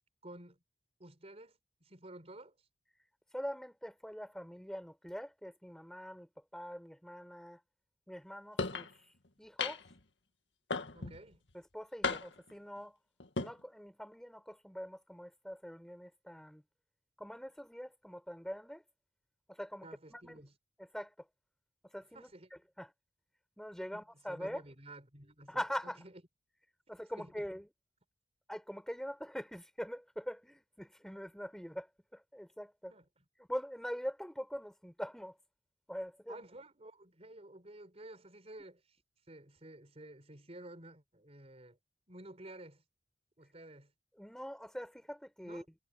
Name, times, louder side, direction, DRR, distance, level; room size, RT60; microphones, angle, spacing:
voice 1, 0.2-0.6 1.0-2.7 10.9-11.4 19.8-20.5 22.1-22.5 23.9-26.2 27.1-27.5 32.9-33.2 36.3-39.0 39.3-41.8 42.1-42.8 43.4-43.9 45.4-45.7, right 1 dB, 35° right, 4.7 m, -52 dB
voice 2, 3.3-7.6 8.1-8.9 9.4-9.8 11.0-11.1 11.5-13.0 13.4-16.6 17.2-18.8 19.5-20.4 20.8-21.3 21.9-22.9 23.6-24.6 25.5-26.0 26.9-27.6 28.5-32.9 33.5-35.4 35.9-36.4 44.2-45.6, equal, 5° left, 4.6 m, -43 dB
sound 1, 8.6-8.9 9.6-10.0 10.7-11.2 12.0-12.5 13.2-13.5, left 4 dB, 85° left, 2.0 m, -35 dB
head